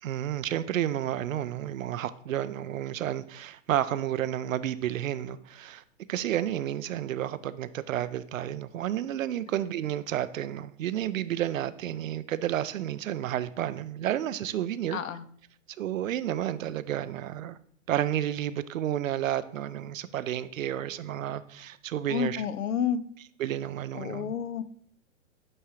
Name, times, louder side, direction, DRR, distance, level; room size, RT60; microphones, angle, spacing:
voice 1, 0.0-5.8 6.1-15.0 15.8-17.6 17.9-22.4 23.4-24.3, right 11 dB, 85° right, 15 dB, 0.5 m, -31 dB
voice 2, 14.9-15.2 22.1-23.0 23.9-24.6, left 7 dB, 85° left, 15 dB, 0.6 m, -30 dB
8.9 x 3.6 x 3.1 m, 0.62 s
hypercardioid pair, 130°, 39 cm